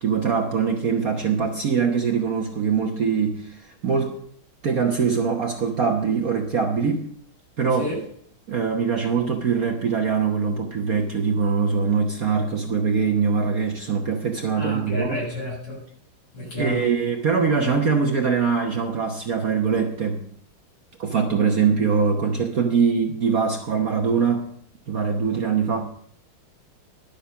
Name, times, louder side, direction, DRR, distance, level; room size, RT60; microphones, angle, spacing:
voice 1, 0.0-4.2 4.6-7.1 7.6-7.9 8.5-15.2 16.5-20.2 21.0-24.5 24.9-25.8, right 5 dB, 50° right, 1.2 m, -23 dB
voice 2, 14.6-15.8 16.3-16.9, left 1 dB, 55° left, 7.1 m, -30 dB
12.0 x 6.7 x 7.0 m
omnidirectional pair, 2.3 m